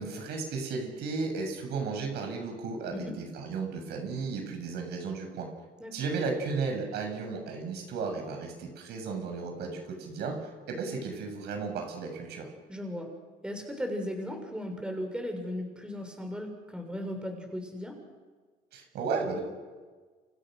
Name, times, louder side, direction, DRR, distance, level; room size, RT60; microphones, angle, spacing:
voice 1, 0.0-5.5 5.9-12.5 18.7-19.4, right 4 dB, 75° right, 4 dB, 7.3 m, -34 dB
voice 2, 12.7-13.1 13.4-18.0, equal, 5° right, 3 dB, 6.4 m, -36 dB
30.0 x 29.0 x 6.6 m, 1.4 s
cardioid pair, 110°, 17 cm